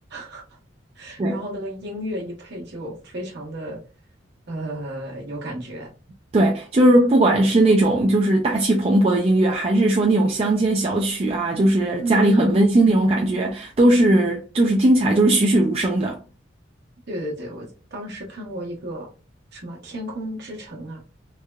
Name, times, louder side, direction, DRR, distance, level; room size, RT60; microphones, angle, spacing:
voice 1, 0.1-0.4 1.0-3.8 4.5-5.9 12.0-13.0 17.1-19.1 19.5-21.0, right 1 dB, 60° right, 1.1 m, -33 dB
voice 2, 6.3-16.2, right 1 dB, 30° right, 0.3 m, -18 dB
3.3 x 2.1 x 2.2 m
head